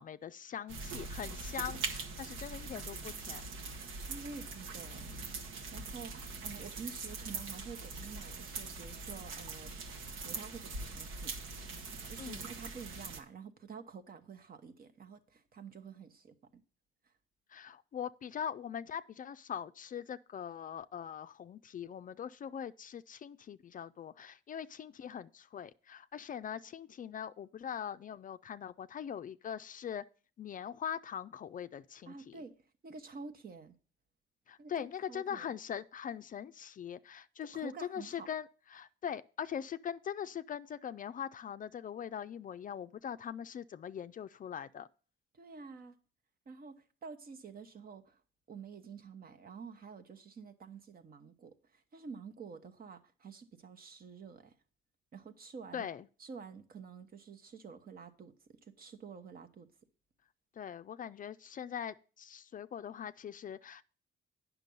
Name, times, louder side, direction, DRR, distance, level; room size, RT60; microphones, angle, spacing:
voice 1, 0.0-3.4 12.2-12.5 17.5-30.0 30.4-32.4 34.5-44.9 55.7-56.1 60.6-63.8, left 8 dB, 45° left, 0.4 m, -42 dB
sound 1, 0.7-13.2, right 3 dB, 85° right, 1.2 m, -42 dB
voice 2, 4.1-9.7 10.1-11.4 12.0-16.6 32.1-32.6 32.8-33.8 34.6-35.6 37.5-38.3 45.3-46.0 46.5-48.2 48.5-54.5 55.1-55.9 56.2-58.3 58.6-59.7, right 5 dB, 50° right, 1.1 m, -49 dB
9.0 x 6.0 x 5.3 m
cardioid pair, 90°, 20 cm